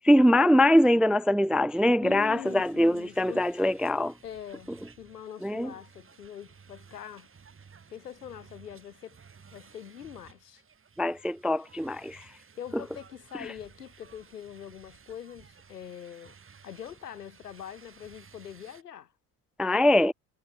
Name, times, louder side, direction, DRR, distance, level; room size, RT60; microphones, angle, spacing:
voice 1, 0.0-4.1 5.4-5.7 11.0-12.3 13.4-13.5 19.6-20.1, left 1 dB, ahead, 0.3 m, -23 dB
voice 2, 2.0-3.5 4.2-7.3 7.9-9.2 9.5-10.6 12.6-16.3 16.6-19.1, left 9 dB, 80° left, 3.4 m, -43 dB
sound 1, 2.2-18.8, right 6 dB, 25° right, 6.3 m, -56 dB
figure-of-eight pair, 65°, 47 cm